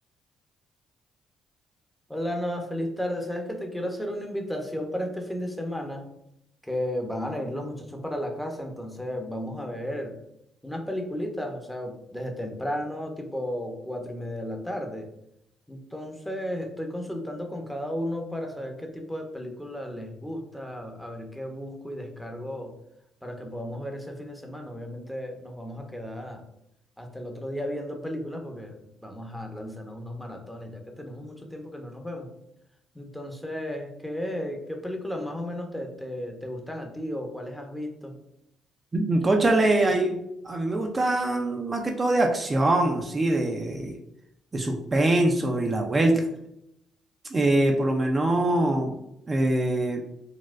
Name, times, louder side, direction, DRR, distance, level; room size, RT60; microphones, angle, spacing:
voice 1, 2.1-6.1 6.6-10.2 10.6-15.1 15.7-22.7 23.2-26.4 27.0-32.3 32.9-38.1, equal, 5° left, 3 dB, 0.7 m, -34 dB
voice 2, 38.9-40.2 40.4-43.9 44.5-46.3 47.3-49.0 49.3-50.0, right 2 dB, 35° right, 2 dB, 0.5 m, -23 dB
4.0 x 2.2 x 2.5 m, 0.79 s
supercardioid pair, 65°, 0 cm